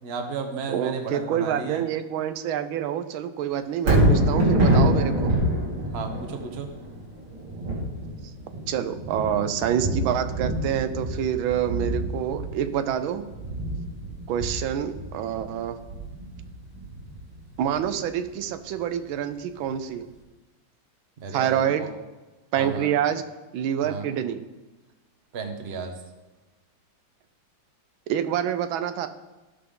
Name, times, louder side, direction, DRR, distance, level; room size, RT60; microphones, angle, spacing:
voice 1, 0.0-1.8 5.9-6.7 21.2-21.9 22.6-22.9 23.8-24.1 25.3-25.9, right 4 dB, 40° right, 5 dB, 1.0 m, -33 dB
voice 2, 0.7-5.3 8.7-13.2 14.3-15.8 17.6-20.1 21.3-21.9 22.5-23.2 23.5-24.4 28.1-29.1, right 9 dB, 90° right, 10 dB, 1.5 m, -27 dB
Thunder, 3.7-18.0 18.4-18.5, right 1 dB, 70° right, 3.5 m, -26 dB
15.5 x 5.7 x 3.8 m, 1.2 s
omnidirectional pair, 2.2 m